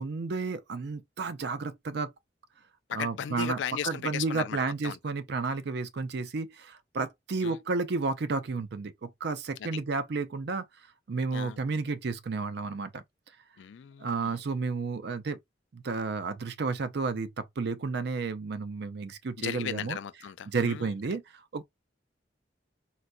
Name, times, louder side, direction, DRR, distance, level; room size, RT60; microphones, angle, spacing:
voice 1, 0.0-2.1 2.9-3.6 3.8-10.6 11.1-13.0 14.0-15.4 15.7-20.0 20.5-21.2 21.5-21.6, right 4 dB, 60° right, 0.5 m, -32 dB
voice 2, 2.9-5.0 7.4-7.6 9.6-9.8 11.3-11.6 13.6-14.4 19.4-20.9, left 8 dB, 75° left, 0.4 m, -36 dB
4.0 x 2.2 x 2.4 m
head